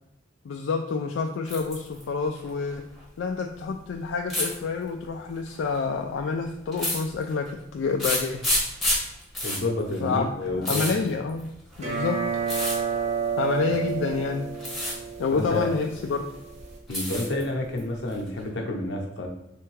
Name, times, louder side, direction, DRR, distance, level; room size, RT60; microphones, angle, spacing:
voice 1, 0.4-2.8 3.2-7.5 7.7-8.7 10.0-11.5 11.8-12.2 13.4-14.5 15.2-16.2, left 4 dB, 80° left, 3 dB, 0.3 m, -28 dB
sound 1, 1.5-2.0 2.4-3.0 4.3-4.6 5.5-5.8 6.7-7.5 8.0-11.8 12.4-12.8 13.7-14.1 14.5-15.0 15.3-16.1 16.5-17.4 17.8-18.5, left 1 dB, ahead, 0.9 m, -29 dB
voice 2, 9.4-10.8 15.3-15.7 16.9-19.3, left 2 dB, 65° left, 0 dB, 0.8 m, -29 dB
sound 2, 11.7-16.8, right 6 dB, 35° right, 0.7 m, -30 dB
3.4 x 3.3 x 3.1 m, 0.87 s
head